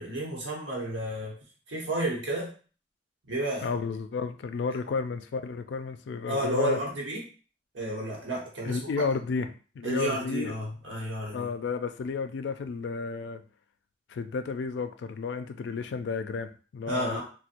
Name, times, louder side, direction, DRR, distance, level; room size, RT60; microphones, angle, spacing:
voice 1, 0.0-1.4 1.7-2.5 3.3-3.7 6.3-7.2 7.7-9.0 9.8-11.5 16.9-17.2, right 1 dB, 90° right, -2 dB, 1.0 m, -31 dB
voice 2, 3.6-6.8 8.6-10.6 11.3-13.4 14.1-17.2, left 4 dB, 70° left, 9 dB, 0.3 m, -32 dB
4.2 x 2.1 x 2.5 m, 0.39 s
head